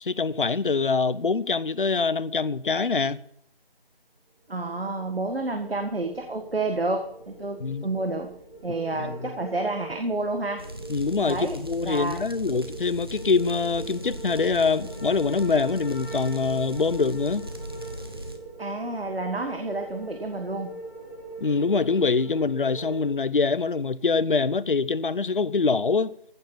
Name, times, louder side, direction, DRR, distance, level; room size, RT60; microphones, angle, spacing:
voice 1, 0.0-3.2 7.6-7.9 8.9-9.3 10.9-17.5 21.4-26.1, left 4 dB, 60° left, 0.7 m, -24 dB
sound 1, 4.5-23.1, right 2 dB, 20° left, 4.1 m, -42 dB
voice 2, 4.5-8.3 8.6-10.6 11.2-11.5 11.8-12.2 18.6-20.7, right 2 dB, 70° right, 1.9 m, -29 dB
sound 2, 10.6-18.4, equal, 25° right, 1.0 m, -38 dB
15.0 x 7.4 x 5.7 m
figure-of-eight pair, 175°, 30 cm